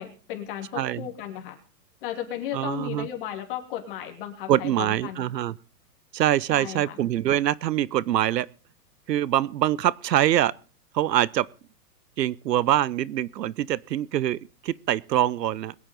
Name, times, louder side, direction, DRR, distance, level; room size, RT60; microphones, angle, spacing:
voice 1, 0.0-1.6 2.0-5.3 6.5-7.0, left 11 dB, 30° left, 3.0 m, -35 dB
voice 2, 0.7-1.1 2.5-3.1 4.5-5.5 6.1-8.5 9.1-10.5 10.9-11.5 12.2-15.7, right 12 dB, 75° right, 0.8 m, -24 dB
22.0 x 9.7 x 3.8 m
hypercardioid pair, 170°, 50 cm